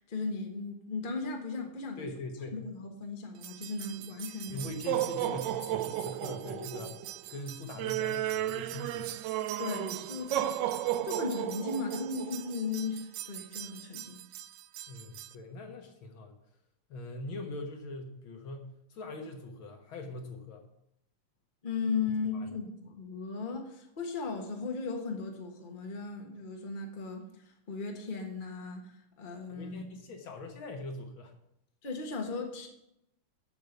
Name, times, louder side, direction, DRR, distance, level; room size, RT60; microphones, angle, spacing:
voice 1, 0.0-2.1 2.5-4.7 5.3-5.4 9.6-10.5 11.0-14.2 21.6-29.8 31.8-32.7, left 4 dB, 25° left, 2 dB, 1.4 m, -36 dB
voice 2, 2.0-2.6 4.5-7.0 7.3-9.1 14.9-16.4 16.9-20.7 22.3-22.5 29.5-31.3, left 2 dB, 65° left, 4 dB, 2.0 m, -42 dB
sound 1, 3.4-15.3, right 13 dB, 80° right, 1.0 m, -35 dB
8.3 x 6.7 x 8.0 m, 0.79 s
omnidirectional pair, 2.4 m